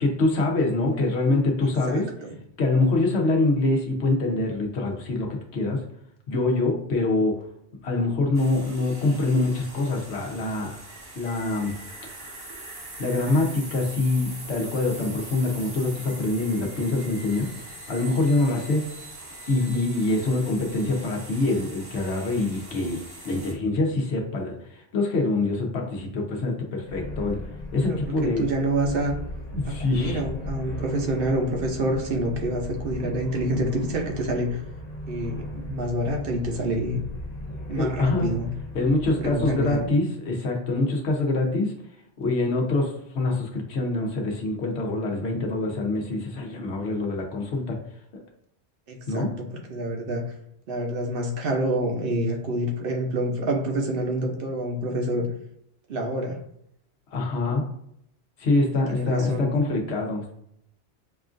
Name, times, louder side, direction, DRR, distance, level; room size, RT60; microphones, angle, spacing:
voice 1, 0.0-2.1 2.6-5.8 6.3-7.4 7.8-10.8 11.2-11.7 13.0-17.5 17.9-18.9 19.5-27.4 27.7-28.4 29.5-30.2 37.7-38.3 38.7-41.7 42.2-47.8 48.1-48.2 49.1-49.3 57.1-57.7 58.4-60.3, left 2 dB, 80° left, 1 dB, 1.1 m, -25 dB
voice 2, 1.9-2.4 27.8-29.1 29.6-34.6 35.1-37.0 37.7-38.5 39.2-39.9 48.9-50.2 50.7-55.3 55.9-56.4 58.9-59.5, right 1 dB, 60° right, 1 dB, 0.9 m, -27 dB
sound 1, 8.3-23.5, right 2 dB, 25° right, 0.6 m, -42 dB
sound 2, 26.9-39.9, equal, 40° left, 0.9 m, -37 dB
5.6 x 2.4 x 2.5 m, 0.72 s
omnidirectional pair, 1.1 m